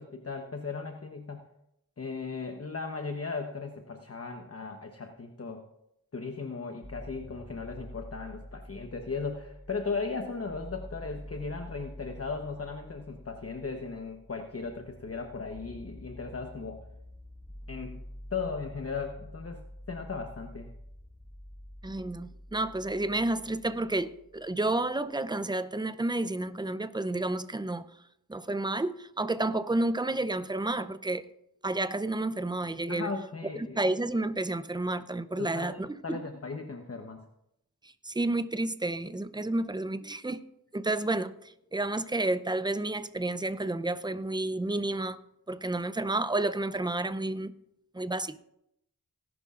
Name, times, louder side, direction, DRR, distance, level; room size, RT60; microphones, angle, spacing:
voice 1, 0.0-1.4 2.0-5.6 6.1-16.8 17.7-18.0 18.3-20.7 32.9-33.8 35.4-37.2, left 4 dB, 40° left, 1.0 m, -37 dB
sound 1, 6.8-24.8, equal, 10° left, 1.1 m, -48 dB
voice 2, 21.8-27.9 28.3-31.2 31.6-33.1 33.6-36.2 37.8-40.4 40.7-45.2 45.5-47.5 47.9-48.4, right 2 dB, 10° right, 0.6 m, -31 dB
18.5 x 11.0 x 2.5 m
wide cardioid pair, 65°, 37 cm